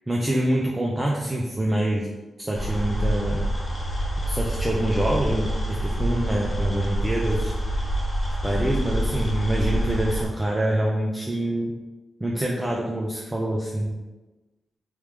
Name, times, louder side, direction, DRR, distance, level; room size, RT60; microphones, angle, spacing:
voice 1, 0.1-2.1 2.4-3.5 4.3-7.5 8.4-11.7 12.2-14.0, right 1 dB, 20° right, -2 dB, 0.5 m, -25 dB
sound 1, 2.5-10.3, right 1 dB, 35° left, 1.5 m, -26 dB
3.5 x 3.1 x 3.2 m, 1.1 s
cardioid pair, 70°, 0 cm